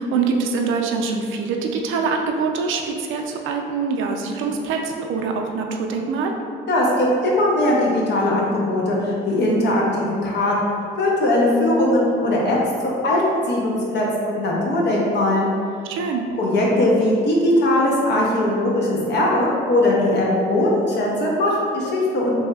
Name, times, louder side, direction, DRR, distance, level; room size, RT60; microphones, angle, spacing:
voice 1, 0.0-6.4 15.9-16.3, right 4 dB, 80° right, 2 dB, 0.4 m, -24 dB
voice 2, 6.7-10.5 11.0-12.6 12.8-15.5 16.4-22.4, left 1 dB, 60° left, -3 dB, 0.8 m, -20 dB
3.3 x 2.7 x 2.3 m, 2.2 s
cardioid pair, 90°, 20 cm